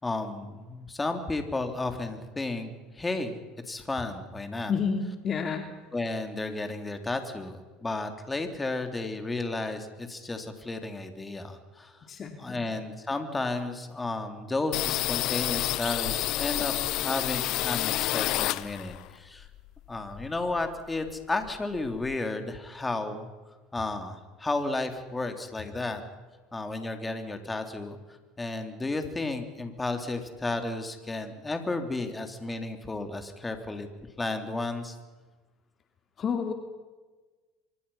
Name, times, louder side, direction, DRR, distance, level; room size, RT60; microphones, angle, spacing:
voice 1, 0.0-3.4 3.7-4.7 5.9-12.0 12.4-19.5 19.9-23.3 23.7-26.0 26.5-28.0 28.4-33.9 34.2-35.0, left 2 dB, 15° left, 6 dB, 3.5 m, -33 dB
voice 2, 4.7-5.7 12.1-12.6 36.2-36.5, left 6 dB, 40° left, 5 dB, 2.7 m, -30 dB
sound 1, 14.7-19.1 19.4-20.8 21.1-21.2 21.4-22.2, left 16 dB, 60° left, 0.9 m, -29 dB
25.5 x 24.0 x 5.8 m, 1.3 s
hypercardioid pair, 80°, 0 cm